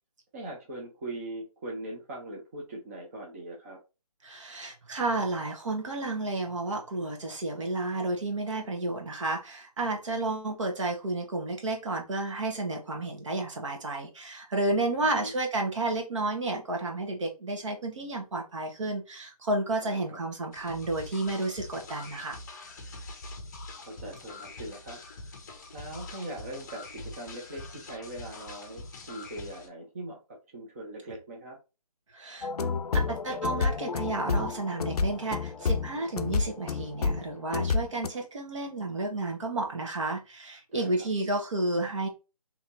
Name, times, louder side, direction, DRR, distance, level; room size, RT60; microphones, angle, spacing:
voice 1, 0.3-3.8 15.0-15.3 19.8-20.2 23.8-25.0 25.7-30.2 30.5-31.6 40.7-41.1, right 1 dB, 25° right, 0.7 m, -41 dB
voice 2, 4.2-22.4 32.1-42.1, right 2 dB, 55° right, 1.2 m, -31 dB
sound 1, 20.5-29.7, left 2 dB, 30° left, 0.6 m, -44 dB
sound 2, 32.4-38.1, left 4 dB, 90° left, 0.4 m, -29 dB
4.2 x 2.9 x 2.5 m
figure-of-eight pair, 155°, 19 cm